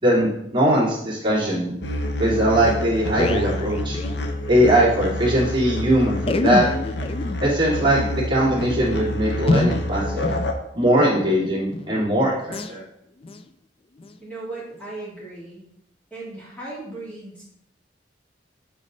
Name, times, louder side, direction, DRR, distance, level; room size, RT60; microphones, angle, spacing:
voice 1, 0.0-1.7 2.2-4.0 4.5-6.7 7.4-10.3 10.7-12.8, right 1 dB, 30° right, -7 dB, 2.8 m, -20 dB
sound 1, 1.8-10.5, left 1 dB, 75° left, 0.9 m, -28 dB
sound 2, 2.8-4.9 5.2-5.3 5.4-5.6 6.2-11.3 11.7-12.0 12.5-12.7 13.2-13.5 14.0-14.1 14.8-14.9, left 2 dB, 35° left, 0.4 m, -28 dB
voice 2, 14.2-15.6 16.1-17.4, right 2 dB, 10° left, -7 dB, 3.0 m, -36 dB
8.3 x 4.1 x 4.0 m, 0.75 s
head